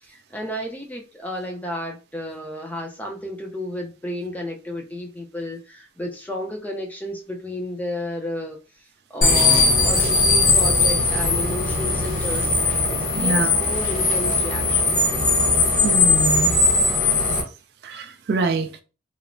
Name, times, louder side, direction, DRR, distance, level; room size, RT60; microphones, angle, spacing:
voice 1, 0.0-8.6 9.1-12.8 13.1-15.0, left 1 dB, 10° left, 0.4 m, -32 dB
sound 1, 9.2-17.4, left 3 dB, 45° left, 0.8 m, -19 dB
voice 2, 13.2-13.5 15.8-16.6 17.8-18.7, right 3 dB, 65° right, 0.3 m, -24 dB
3.0 x 2.0 x 2.5 m
head